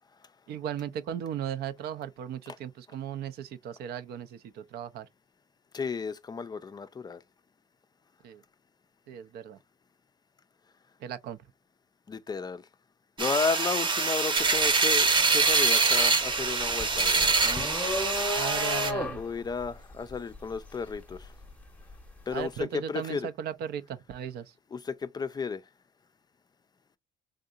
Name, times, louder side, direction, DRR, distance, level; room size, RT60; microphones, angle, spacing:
voice 1, 0.5-4.3 4.6-5.1 8.2-8.4 9.1-9.6 11.0-11.4 18.3-19.2 22.3-24.4, right 9 dB, 70° right, 0.6 m, -36 dB
voice 2, 5.7-7.2 12.1-12.7 13.2-17.4 19.1-21.3 22.3-23.3 24.7-25.6, left 5 dB, 25° left, 0.4 m, -33 dB
sound 1, 13.2-18.9, right 4 dB, 30° right, 0.8 m, -25 dB
sound 2, 14.4-14.6 15.0-22.0, left 2 dB, 10° left, 0.8 m, -35 dB
3.6 x 2.7 x 2.4 m
cardioid pair, 110°, 17 cm